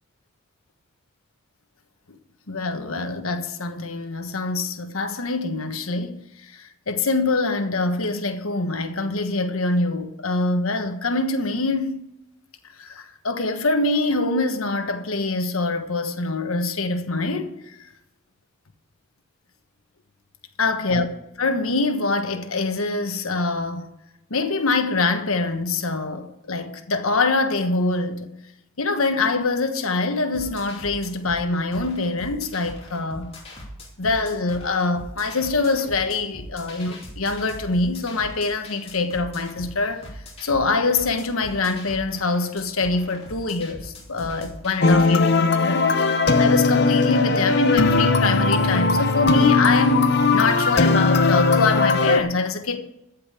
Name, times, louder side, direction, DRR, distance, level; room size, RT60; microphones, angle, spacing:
voice 1, 2.5-12.1 12.8-17.8 20.6-21.1 21.4-23.9 24.3-28.3 28.8-33.3 34.0-40.0 40.4-46.1 46.4-52.8, left 3 dB, 85° left, 1.3 m, -24 dB
sound 1, 30.3-45.1, left 1 dB, 30° left, 2.8 m, -41 dB
sound 2, 44.8-52.2, left 3 dB, 50° left, 0.7 m, -19 dB
14.0 x 5.4 x 8.5 m
head